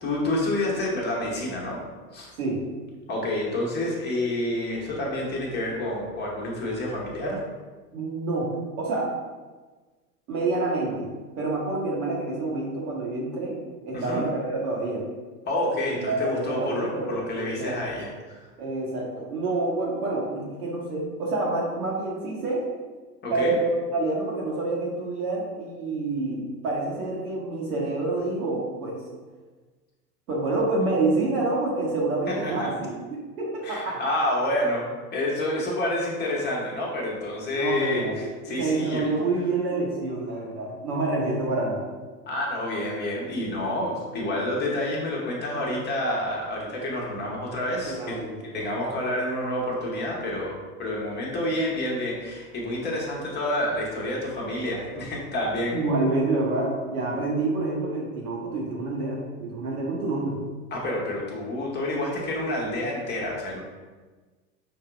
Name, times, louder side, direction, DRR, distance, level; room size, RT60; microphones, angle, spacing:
voice 1, 0.0-1.8 2.1-2.3 3.1-7.4 13.9-14.2 15.5-18.4 23.2-23.6 32.3-32.7 33.6-39.1 42.3-48.2 48.4-55.8 60.7-63.6, left 1 dB, 20° left, -3 dB, 1.1 m, -28 dB
voice 2, 7.9-8.5 8.8-9.1 10.3-11.1 11.3-15.0 15.9-17.8 18.6-22.6 23.3-29.0 30.3-34.0 37.5-38.2 38.6-41.8 47.9-48.7 55.7-60.4, right 2 dB, 65° right, -3 dB, 1.4 m, -27 dB
5.7 x 2.8 x 2.3 m, 1.3 s
figure-of-eight pair, 90°, 48 cm